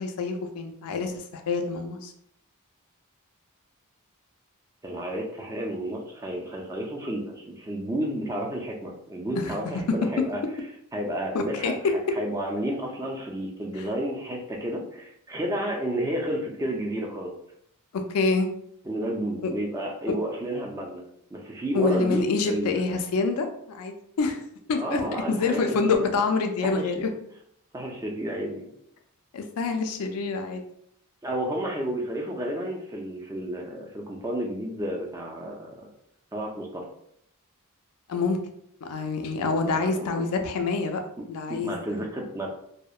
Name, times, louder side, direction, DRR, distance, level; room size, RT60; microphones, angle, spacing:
voice 1, 0.0-2.1 9.3-10.1 11.3-11.9 13.8-13.9 17.9-18.5 21.7-24.4 24.7-25.0 25.3-27.1 29.3-30.6 38.1-38.4 38.8-41.0 41.3-42.1, left 4 dB, 75° left, 5 dB, 0.4 m, -26 dB
voice 2, 4.8-10.4 10.9-11.8 12.2-17.3 18.9-21.0 21.3-23.0 24.8-26.1 26.6-26.9 27.7-28.6 31.2-35.9 36.3-36.9 39.6-40.3 41.2-42.5, right 1 dB, 15° right, 0 dB, 0.3 m, -31 dB
2.7 x 2.0 x 2.3 m, 0.72 s
head